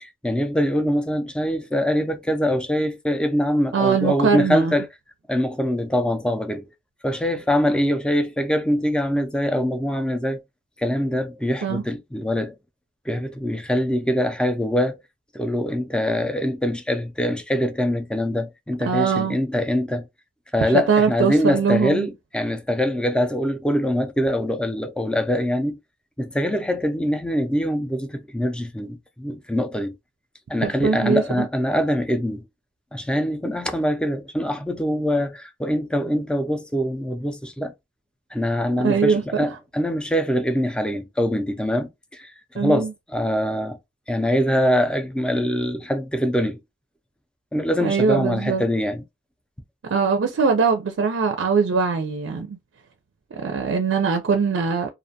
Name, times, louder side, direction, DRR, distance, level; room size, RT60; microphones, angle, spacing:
voice 1, 0.0-4.9 5.3-6.7 7.0-10.4 10.8-12.5 13.1-15.0 15.3-20.1 20.5-25.8 26.2-29.9 30.5-32.4 32.9-37.7 38.3-43.8 44.1-46.6 47.5-49.0, equal, 5° left, 0.3 m, -23 dB
voice 2, 3.7-4.8 11.6-11.8 18.8-19.4 20.7-22.1 30.6-31.5 38.8-39.5 42.6-42.9 47.8-48.6 49.9-52.6 53.3-54.9, right 5 dB, 85° right, 0.4 m, -21 dB
2.4 x 2.2 x 2.6 m
head